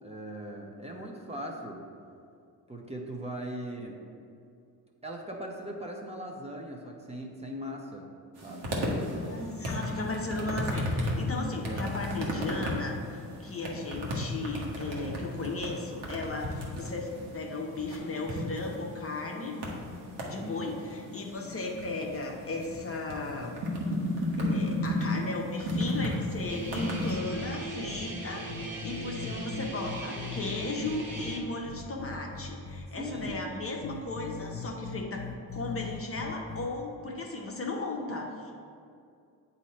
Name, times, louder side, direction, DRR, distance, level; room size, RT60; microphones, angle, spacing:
voice 1, 0.0-1.8 2.7-4.0 5.0-8.1 8.4-9.4 11.6-12.0 20.4-20.6 33.0-33.4 37.0-37.2, equal, 15° right, 0 dB, 0.8 m, -40 dB
sound 1, 8.4-27.2, left 1 dB, 70° right, 1.3 m, -34 dB
voice 2, 9.1-19.6 20.2-23.6 24.4-35.3 35.5-38.5, left 2 dB, 35° left, 0 dB, 0.7 m, -36 dB
sound 2, 26.3-27.5 27.8-28.0 28.5-31.3 31.7-32.8 33.2-33.3 33.8-36.7, left 6 dB, 60° left, 0.8 m, -41 dB
Guitar, 26.5-31.4, right 1 dB, 55° right, 1.5 m, -39 dB
8.0 x 2.8 x 4.3 m, 2.4 s
cardioid pair, 80°, 41 cm